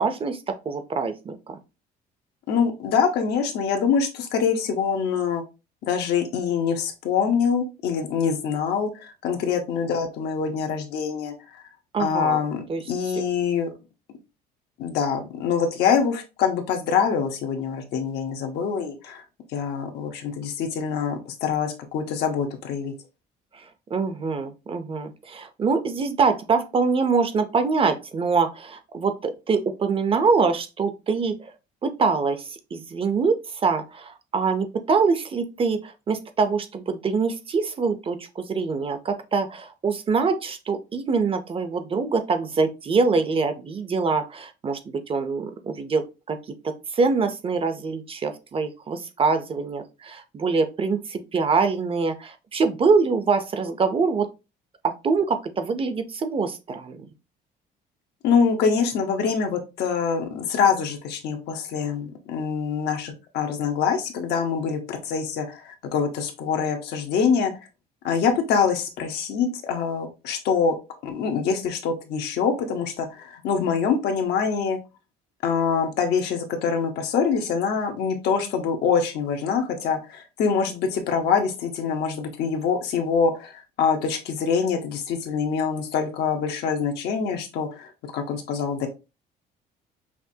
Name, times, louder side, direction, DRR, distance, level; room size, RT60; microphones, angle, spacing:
voice 1, 0.0-1.6 11.9-12.4 12.7-12.8 23.5-23.6 23.9-31.5 31.8-46.4 46.6-54.3 54.8-57.0, right 4 dB, 35° right, 9 dB, 0.6 m, -24 dB
voice 2, 2.5-5.4 5.8-11.3 12.0-13.7 14.8-19.2 19.5-22.9 58.2-67.7 68.0-70.7 71.0-74.8 75.4-88.9, left 6 dB, 75° left, 4 dB, 1.0 m, -25 dB
5.8 x 2.5 x 2.7 m, 0.28 s
cardioid pair, 110°, 17 cm